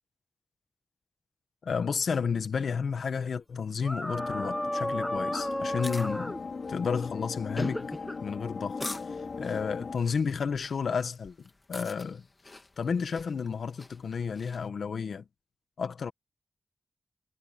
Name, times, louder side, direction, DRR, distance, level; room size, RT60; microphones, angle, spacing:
voice 1, 1.6-6.4 6.7-7.9 8.2-8.8 9.4-11.3 11.7-12.2 12.8-15.2 15.8-16.1, left 6 dB, 80° left, 1.3 m, -31 dB
sound 1, 3.8-6.4 7.6-8.2 8.8-9.0, equal, 5° left, 0.6 m, -33 dB
sound 2, 4.2-10.0, left 4 dB, 55° left, 3.7 m, -38 dB
sound 3, 5.6-14.7, left 2 dB, 25° left, 1.7 m, -47 dB
wide cardioid pair, 135°, 0 cm